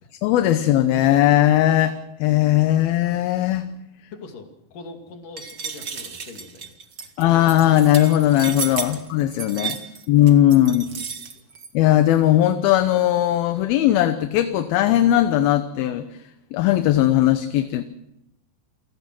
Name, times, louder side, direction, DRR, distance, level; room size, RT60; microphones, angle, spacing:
voice 1, 0.2-3.7 7.2-9.8 10.1-10.9 11.7-16.0 16.5-17.8, left 13 dB, 75° left, 9 dB, 2.7 m, -18 dB
voice 2, 4.1-6.7 7.0-7.1 8.8-9.0 9.5-10.0 10.7-11.5, left 3 dB, 55° left, 4 dB, 4.0 m, -43 dB
sound 1, 5.4-11.7, right 6 dB, 50° right, 1.2 m, -33 dB
29.0 x 18.0 x 6.1 m, 0.84 s
omnidirectional pair, 4.7 m